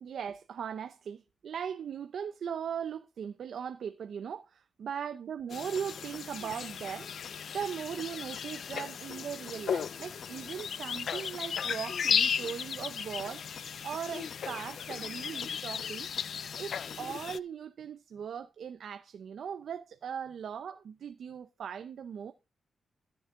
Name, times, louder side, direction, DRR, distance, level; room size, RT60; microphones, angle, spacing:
voice 1, 0.0-7.1 7.5-13.4 13.8-16.1 16.6-22.3, right 7 dB, 70° right, 0.7 m, -39 dB
sound 1, 5.5-17.4, left 7 dB, 65° left, 0.4 m, -35 dB
13.0 x 7.1 x 3.7 m
wide cardioid pair, 120°, 0 cm